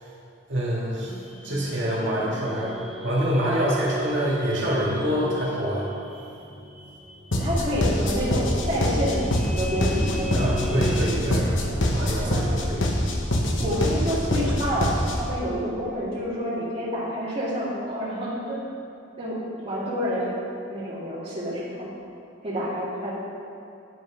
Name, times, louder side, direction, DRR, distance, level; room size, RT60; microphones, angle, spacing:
voice 1, 0.5-1.1 1.4-6.0 10.3-11.5 11.9-12.9, equal, 65° right, -6 dB, 2.1 m, -26 dB
sound 1, 1.0-11.1, right 1 dB, ahead, 1.0 m, -36 dB
sound 2, 7.3-15.3, left 1 dB, 75° left, 1.0 m, -25 dB
voice 2, 7.4-9.3 9.6-10.9 12.2-12.9 13.6-18.6 19.2-20.3 20.7-21.9 22.4-23.1, equal, 30° right, -9 dB, 1.9 m, -28 dB
9.9 x 5.3 x 5.1 m, 2.7 s
head